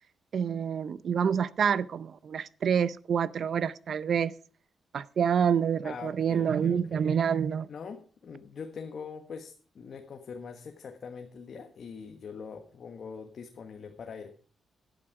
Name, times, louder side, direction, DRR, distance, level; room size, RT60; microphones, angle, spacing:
voice 1, 0.3-4.3 4.9-7.7, right 7 dB, 65° right, 0.6 m, -27 dB
voice 2, 5.8-7.0 7.7-14.3, left 6 dB, 60° left, 1.4 m, -43 dB
12.0 x 11.0 x 4.8 m
cardioid pair, 65°, 0 cm